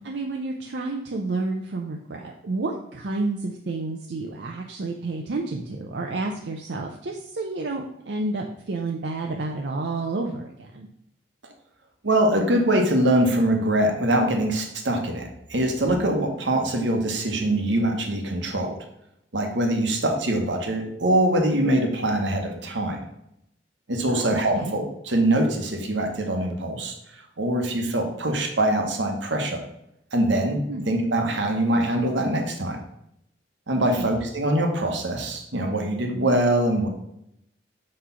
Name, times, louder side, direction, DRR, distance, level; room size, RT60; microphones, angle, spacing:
voice 1, 0.0-10.9 24.1-24.7 30.7-30.8 33.8-34.1, right 3 dB, 75° right, 1 dB, 0.6 m, -30 dB
voice 2, 12.0-18.8 19.3-23.0 23.9-26.9 27.4-29.6 30.1-32.8 33.7-36.9, right 1 dB, 90° right, 3 dB, 1.1 m, -23 dB
6.0 x 3.3 x 5.6 m, 0.79 s
head